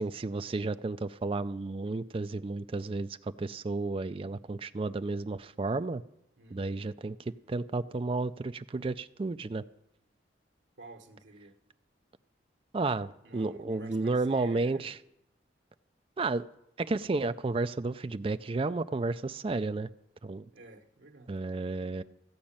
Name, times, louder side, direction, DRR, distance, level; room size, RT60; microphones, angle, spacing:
voice 1, 0.0-6.0 6.5-9.6 12.7-15.0 16.2-16.4 16.8-19.9 20.2-20.5 21.3-22.0, right 3 dB, 30° right, 12 dB, 0.4 m, -32 dB
voice 2, 6.4-6.8 10.8-11.6 13.2-14.9 20.5-21.4, right 2 dB, 80° right, 4 dB, 1.4 m, -50 dB
14.5 x 5.2 x 8.7 m, 0.82 s
head